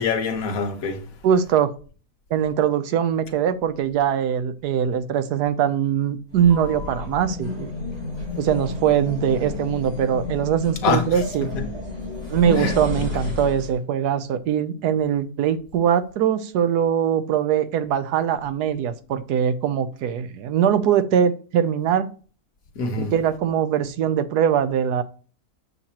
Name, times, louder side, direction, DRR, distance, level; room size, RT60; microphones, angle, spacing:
voice 1, 0.0-1.0 10.8-11.0 12.6-13.1 22.7-23.1, left 5 dB, 65° left, 1.5 m, -25 dB
voice 2, 1.2-1.7 2.3-7.7 8.4-11.5 12.3-22.1 23.0-25.0, right 9 dB, 85° right, 1.3 m, -22 dB
sound 1, 6.3-13.8, left 3 dB, 65° right, 3.9 m, -31 dB
7.3 x 6.8 x 2.9 m
omnidirectional pair, 1.7 m